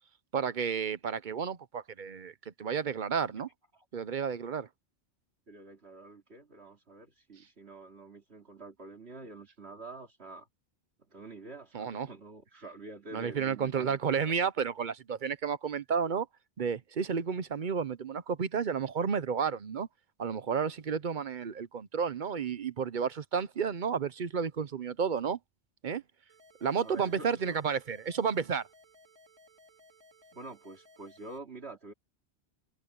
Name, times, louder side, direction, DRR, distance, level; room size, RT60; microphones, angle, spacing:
voice 1, 0.3-3.5 3.9-4.7 11.7-12.1 13.1-16.3 16.6-19.9 20.2-25.4 25.8-26.0 26.6-28.7, right 6 dB, 50° right, 0.8 m, -31 dB
voice 2, 5.5-10.5 11.1-14.3 26.8-27.6 30.3-31.9, right 3 dB, 65° right, 3.0 m, -47 dB
sound 1, 26.3-31.4, left 1 dB, 20° right, 3.2 m, -60 dB
omnidirectional pair, 1.2 m